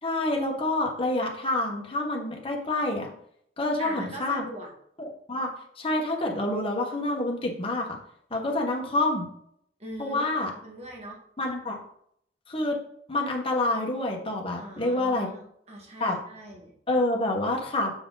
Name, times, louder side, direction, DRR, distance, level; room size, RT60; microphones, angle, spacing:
voice 1, 0.0-3.1 3.6-4.5 5.3-5.5 5.8-8.0 8.3-9.3 10.0-10.5 11.4-11.8 12.5-12.8 13.1-15.3 16.0-16.2 16.9-17.9, left 2 dB, 30° left, 0 dB, 1.4 m, -27 dB
voice 2, 3.8-4.7 9.8-10.3 10.6-11.2 14.6-16.7, right 1 dB, 40° right, -1 dB, 1.9 m, -41 dB
7.0 x 4.9 x 4.0 m, 0.68 s
head